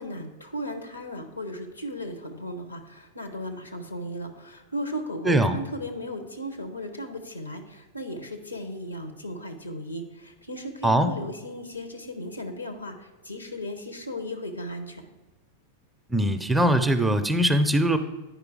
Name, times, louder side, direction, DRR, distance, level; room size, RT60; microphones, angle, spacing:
voice 1, 0.0-15.0, equal, 85° left, 7 dB, 0.9 m, -36 dB
voice 2, 16.1-18.0, right 1 dB, 5° right, 8 dB, 0.5 m, -21 dB
9.3 x 4.9 x 4.7 m, 1.1 s
figure-of-eight pair, 90°, 0 cm